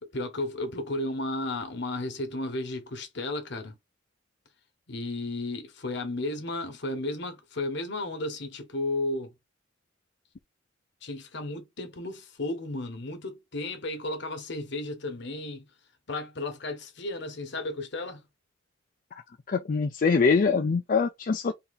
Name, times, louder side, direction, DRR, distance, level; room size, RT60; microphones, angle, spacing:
voice 1, 0.0-3.8 4.9-9.3 11.0-15.7 16.1-18.3, left 2 dB, 65° left, 1.3 m, -33 dB
voice 2, 19.5-21.5, left 5 dB, 45° left, 0.4 m, -23 dB
3.8 x 2.8 x 4.1 m
head